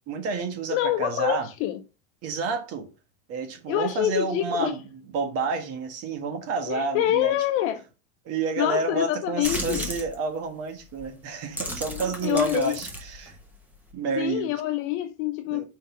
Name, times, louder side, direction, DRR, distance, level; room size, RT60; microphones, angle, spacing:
voice 1, 0.1-1.5 2.2-2.9 3.3-4.8 5.1-7.4 8.2-13.4 13.9-14.5 15.5-15.6, right 4 dB, 35° right, 1.4 m, -29 dB
voice 2, 0.7-1.8 3.7-4.8 6.7-7.8 8.6-9.9 11.9-12.8 14.2-15.6, left 13 dB, 35° left, 0.4 m, -26 dB
sound 1, 9.4-10.2 10.9-11.1 11.4-13.9, equal, 5° right, 1.1 m, -34 dB
5.3 x 3.9 x 5.0 m
supercardioid pair, 155°, 40 cm